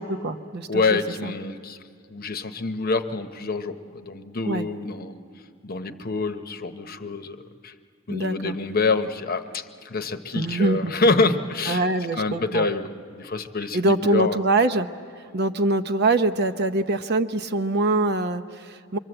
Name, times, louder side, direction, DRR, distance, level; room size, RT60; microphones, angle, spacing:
voice 1, 0.0-1.3 4.4-4.6 8.1-8.5 10.3-10.9 11.7-12.7 13.7-14.9 15.3-19.0, right 2 dB, 55° right, 7 dB, 0.8 m, -24 dB
voice 2, 0.7-1.8 2.1-5.1 5.6-7.4 7.6-7.7 8.1-11.8 12.2-14.4, left 3 dB, 45° left, 8 dB, 0.9 m, -26 dB
25.5 x 23.5 x 7.9 m, 2.2 s
head